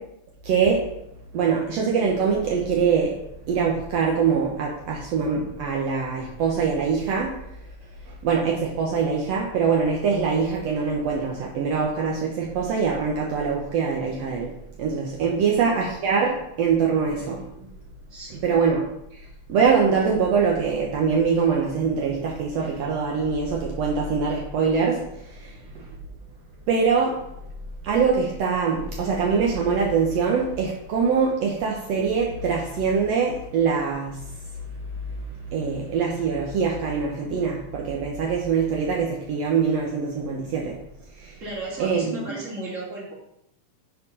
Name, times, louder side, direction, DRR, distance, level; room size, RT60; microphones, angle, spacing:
voice 1, 0.4-0.9 1.3-3.2 3.5-7.4 8.1-14.5 14.8-17.5 18.4-18.9 19.5-25.9 26.7-27.2 27.8-34.2 35.5-40.8 41.2-41.3 41.8-42.1, right 5 dB, 80° right, -1 dB, 1.5 m, -23 dB
voice 2, 18.1-18.4 41.4-43.1, right 2 dB, 25° right, -5 dB, 2.1 m, -35 dB
7.0 x 4.5 x 5.5 m, 0.80 s
omnidirectional pair, 4.2 m